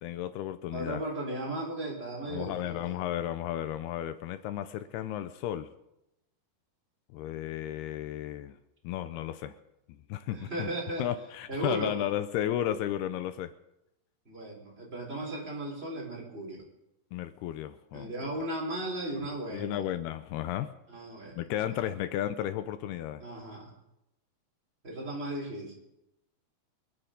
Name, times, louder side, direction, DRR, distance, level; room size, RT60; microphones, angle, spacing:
voice 1, 0.0-1.0 2.3-5.7 7.1-8.6 8.8-9.6 9.9-10.7 11.0-13.5 17.1-18.1 19.5-20.7 21.4-23.2, left 12 dB, 80° left, 11 dB, 2.6 m, -33 dB
voice 2, 0.7-3.0 10.3-11.1 11.5-12.0 14.3-16.7 17.9-19.8 20.9-21.4 23.2-23.7 24.8-25.7, right 1 dB, 15° right, -2 dB, 4.1 m, -36 dB
25.5 x 10.0 x 5.2 m, 0.87 s
omnidirectional pair, 4.7 m